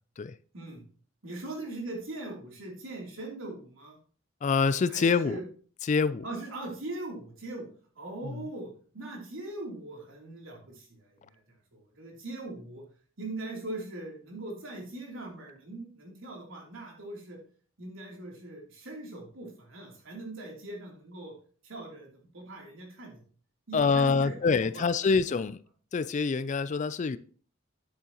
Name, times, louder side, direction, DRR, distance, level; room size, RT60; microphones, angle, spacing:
voice 1, 0.5-0.8 1.2-4.0 4.9-5.4 6.2-7.7 7.9-12.8 13.2-17.4 17.8-21.3 21.6-23.2 23.7-24.9, right 2 dB, 80° right, 3.1 m, -41 dB
voice 2, 4.4-5.4 5.8-6.2 8.2-8.5 23.7-25.6 25.9-27.2, left 5 dB, 35° left, 0.3 m, -26 dB
9.4 x 8.5 x 2.9 m
head